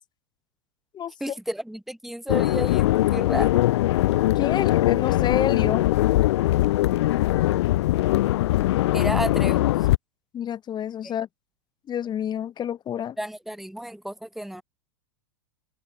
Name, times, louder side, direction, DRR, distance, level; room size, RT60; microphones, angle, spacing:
voice 1, 1.2-3.6 8.9-9.7 11.0-11.1 13.2-14.6, equal, ahead, 2.6 m, -32 dB
sound 1, 2.3-10.0, left 16 dB, 65° left, 1.9 m, -21 dB
voice 2, 4.4-5.9 10.3-11.3 11.9-13.1, left 9 dB, 30° left, 3.2 m, -28 dB
hypercardioid pair, 105°, 15 cm